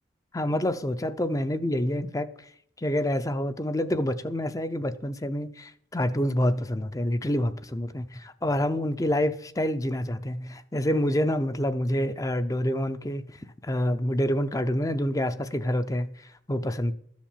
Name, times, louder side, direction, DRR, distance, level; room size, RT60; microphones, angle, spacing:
voice 1, 0.3-2.3 2.8-13.4 13.6-16.9, left 1 dB, 20° left, 0.6 m, -27 dB
13.0 x 7.3 x 7.3 m
head